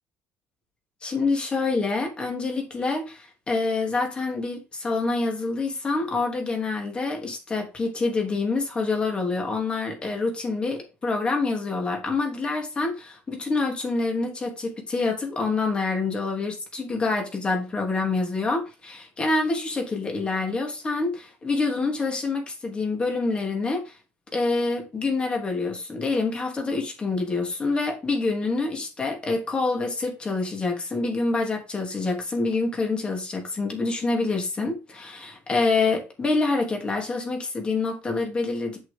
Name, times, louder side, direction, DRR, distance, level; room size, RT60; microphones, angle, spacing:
voice 1, 1.0-23.9 24.3-38.9, left 3 dB, 20° left, 3.1 m, -26 dB
8.1 x 6.3 x 3.7 m
cardioid pair, 135°, 5 cm